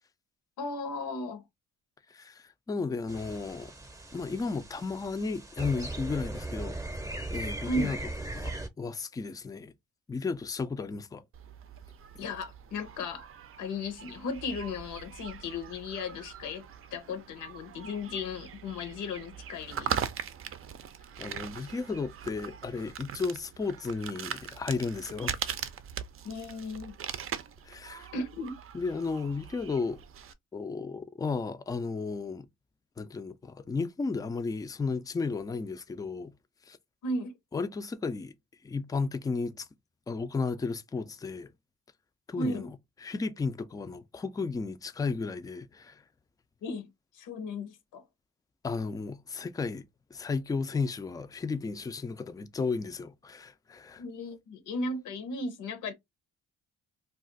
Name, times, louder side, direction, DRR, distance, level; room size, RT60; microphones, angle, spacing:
voice 1, 0.6-1.4 7.6-8.0 12.2-13.3 13.6-20.0 26.2-27.0 28.1-28.5 37.0-37.3 42.4-42.7 46.6-48.0 54.0-55.9, left 2 dB, 80° left, 0.8 m, -35 dB
voice 2, 2.1-3.7 4.1-6.8 7.3-8.0 8.3-9.7 10.1-11.2 21.2-25.6 27.7-28.1 28.7-30.0 30.5-32.5 33.0-36.3 36.7-36.8 37.5-38.3 38.6-39.7 40.1-41.5 42.3-42.7 43.0-46.0 48.6-49.8 50.1-54.0, left 4 dB, 15° left, 0.3 m, -34 dB
sound 1, 3.1-8.7, right 2 dB, 10° right, 0.7 m, -38 dB
sound 2, 11.3-30.3, right 8 dB, 45° right, 0.5 m, -41 dB
2.4 x 2.3 x 3.8 m
cardioid pair, 90°, 30 cm